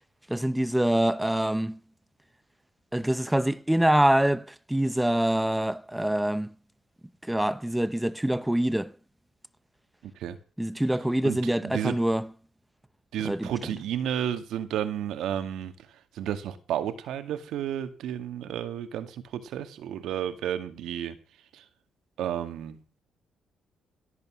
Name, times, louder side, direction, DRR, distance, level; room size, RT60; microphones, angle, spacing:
voice 1, 0.3-1.8 2.9-6.5 7.3-8.9 10.6-12.3 13.2-13.5, right 1 dB, 5° right, 0.8 m, -25 dB
voice 2, 10.0-10.4 11.2-12.0 13.1-21.2 21.5-21.7 22.2-23.0, right 10 dB, 80° right, 2.1 m, -32 dB
17.5 x 8.4 x 6.4 m
cardioid pair, 90°, 0 cm